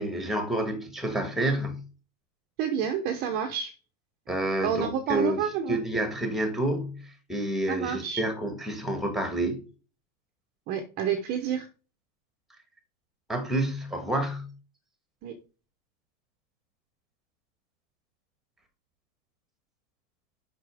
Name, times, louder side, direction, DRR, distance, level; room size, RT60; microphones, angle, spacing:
voice 1, 0.0-1.8 4.3-5.4 5.7-9.6 13.3-14.5, right 1 dB, ahead, 1.3 m, -29 dB
voice 2, 2.6-3.7 4.6-5.8 7.7-8.2 10.7-11.7 15.2-15.4, right 8 dB, 25° right, 0.8 m, -29 dB
7.9 x 5.8 x 3.5 m
supercardioid pair, 165°, 38 cm